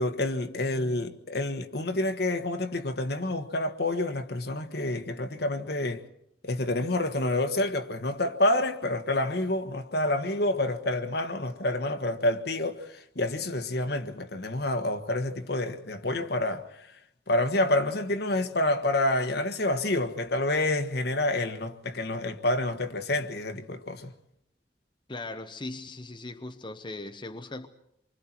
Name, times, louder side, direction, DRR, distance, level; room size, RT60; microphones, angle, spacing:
voice 1, 0.0-6.0 6.4-16.9 17.3-24.1, left 1 dB, 60° left, 1.5 m, -28 dB
voice 2, 25.1-27.7, left 2 dB, 25° left, 0.9 m, -39 dB
27.5 x 24.5 x 4.5 m
head